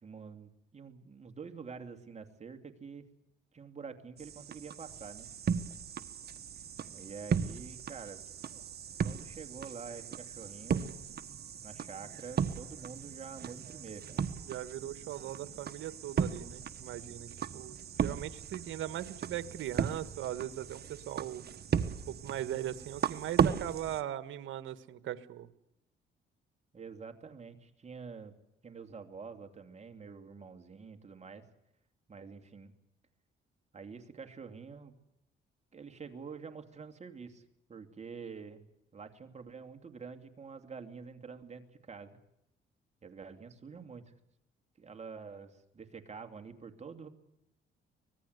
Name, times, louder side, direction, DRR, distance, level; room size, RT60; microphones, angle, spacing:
voice 1, 0.0-3.0 3.5-5.3 6.9-8.2 9.0-10.9 11.6-14.3 26.7-28.3 28.6-31.5 32.1-32.7 33.7-34.9 35.7-37.4 37.7-38.6 38.9-42.2 43.0-44.0 44.8-47.1, right 5 dB, 35° right, 6 dB, 2.6 m, -47 dB
sound 1, 4.2-24.0, right 7 dB, 55° right, 1.4 m, -36 dB
voice 2, 14.4-21.4 22.1-25.5, right 12 dB, 80° right, 13 dB, 1.5 m, -39 dB
25.0 x 20.0 x 8.0 m, 0.81 s
cardioid pair, 90°, 20 cm